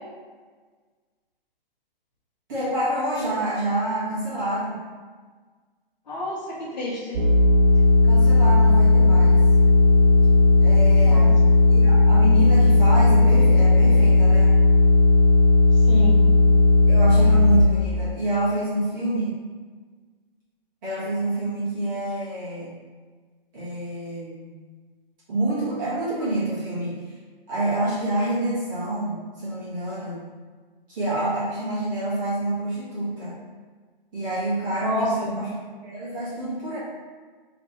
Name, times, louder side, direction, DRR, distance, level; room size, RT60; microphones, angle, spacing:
voice 1, 2.5-4.8 8.0-9.4 10.6-11.4 11.7-14.6 16.9-19.4 20.8-22.7 23.5-24.5 25.3-27.1 27.5-30.2 30.9-33.4 34.1-36.8, right 1 dB, 20° right, -11 dB, 1.4 m, -27 dB
voice 2, 6.1-7.2 11.0-11.3 15.9-16.2 34.8-35.3, left 1 dB, 45° left, -7 dB, 1.4 m, -28 dB
sound 1, 7.1-17.6, left 2 dB, 85° right, 0.8 m, -15 dB
3.3 x 3.2 x 4.1 m, 1.5 s
hypercardioid pair, 175°, 29 cm